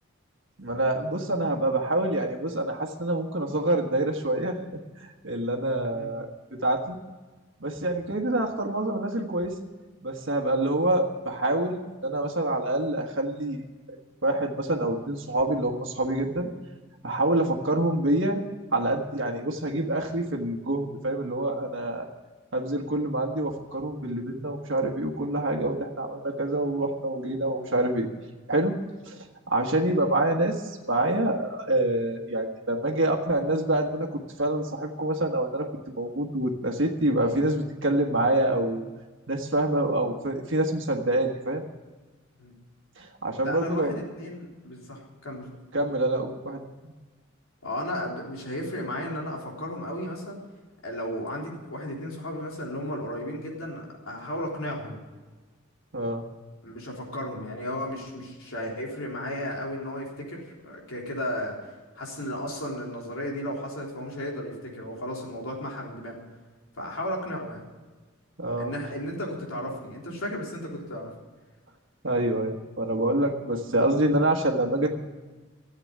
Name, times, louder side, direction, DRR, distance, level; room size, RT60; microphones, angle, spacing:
voice 1, 0.6-6.3 6.5-7.0 7.6-9.5 10.0-13.6 14.2-16.5 17.0-18.4 18.7-22.1 22.5-28.1 28.5-28.8 29.1-29.2 29.5-38.9 39.3-41.6 43.0-44.0 45.7-46.6 55.9-56.2 68.4-68.7 72.0-75.0, right 1 dB, 65° right, 1 dB, 1.5 m, -26 dB
voice 2, 43.4-45.5 47.6-50.4 50.8-55.0 56.6-66.2 66.8-67.7 68.6-71.1, left 1 dB, 85° left, -1 dB, 3.7 m, -34 dB
14.0 x 8.1 x 9.6 m, 1.3 s
head